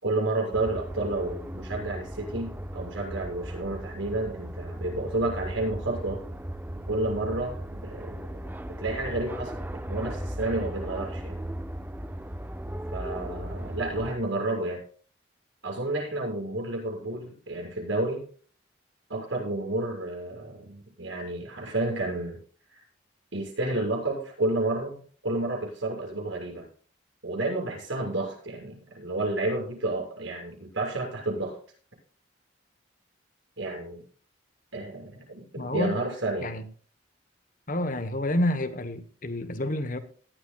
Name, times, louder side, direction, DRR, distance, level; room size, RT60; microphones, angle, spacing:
voice 1, 0.0-6.2 6.9-8.3 8.8-11.4 12.9-14.8 15.6-18.2 19.1-22.4 22.7-22.8 23.3-26.7 27.2-31.6 33.6-34.0 34.7-36.5, right 2 dB, 75° right, 6.9 m, -31 dB
sound 1, 0.5-14.2, right 1 dB, 10° right, 0.6 m, -37 dB
voice 2, 35.6-36.0 36.4-36.6 37.7-40.0, left 1 dB, 40° left, 1.1 m, -29 dB
18.0 x 12.5 x 2.4 m
head